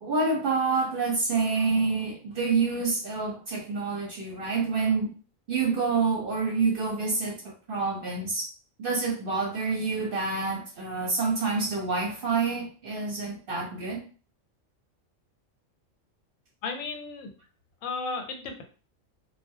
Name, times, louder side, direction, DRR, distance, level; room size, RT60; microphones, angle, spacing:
voice 1, 0.0-5.1 5.5-8.5 8.8-14.0, right 4 dB, 55° right, -2 dB, 0.7 m, -27 dB
voice 2, 16.6-17.3 17.8-18.6, left 4 dB, 90° left, 5 dB, 1.0 m, -34 dB
2.2 x 2.1 x 2.6 m, 0.38 s
omnidirectional pair, 1.4 m